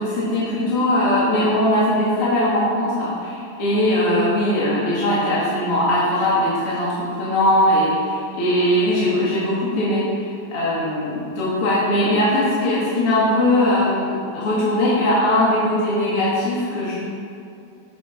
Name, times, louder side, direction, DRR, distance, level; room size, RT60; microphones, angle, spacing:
voice 1, 0.0-17.0, left 1 dB, 50° left, -7 dB, 2.8 m, -20 dB
16.0 x 6.9 x 5.8 m, 2.6 s
omnidirectional pair, 3.4 m